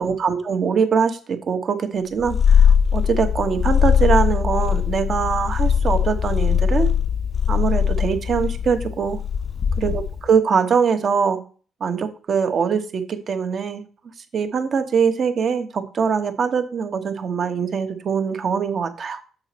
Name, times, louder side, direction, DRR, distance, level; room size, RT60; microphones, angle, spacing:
voice 1, 0.0-6.9 7.5-9.2 9.8-11.4 11.8-13.8 14.3-19.2, right 6 dB, 55° right, 8 dB, 1.0 m, -22 dB
Purr, 2.2-10.3, left 7 dB, 45° left, 0.4 m, -20 dB
6.6 x 5.0 x 4.2 m, 0.39 s
cardioid pair, 90°, 0 cm